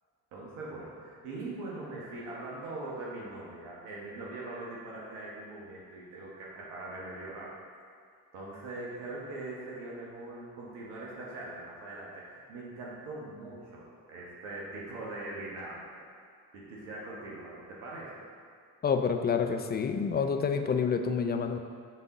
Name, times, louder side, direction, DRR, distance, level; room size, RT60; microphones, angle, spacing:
voice 1, 0.3-7.5 8.3-16.0 16.5-18.2, right 2 dB, 80° right, -5 dB, 1.2 m, -41 dB
voice 2, 18.8-21.6, left 6 dB, 25° left, 6 dB, 0.4 m, -28 dB
6.5 x 3.6 x 3.9 m, 2.1 s
hypercardioid pair, 60°, 42 cm